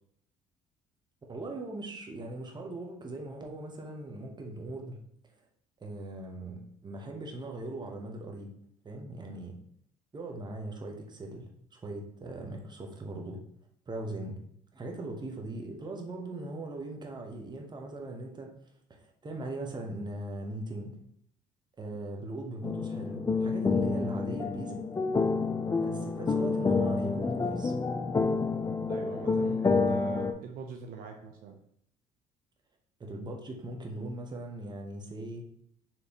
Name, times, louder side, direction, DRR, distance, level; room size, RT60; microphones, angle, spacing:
voice 1, 1.3-5.0 5.8-8.5 8.8-9.5 10.1-11.5 11.7-13.4 13.9-14.4 14.7-18.5 18.9-20.9 21.8-24.8 25.7-27.7 33.0-35.5, right 2 dB, 30° right, 2 dB, 1.0 m, -40 dB
sound 1, 22.6-30.3, left 4 dB, 20° left, 0.4 m, -28 dB
voice 2, 28.9-31.6, right 5 dB, 65° right, 2 dB, 0.6 m, -43 dB
4.3 x 3.2 x 3.0 m, 0.68 s
hypercardioid pair, 65°, 16 cm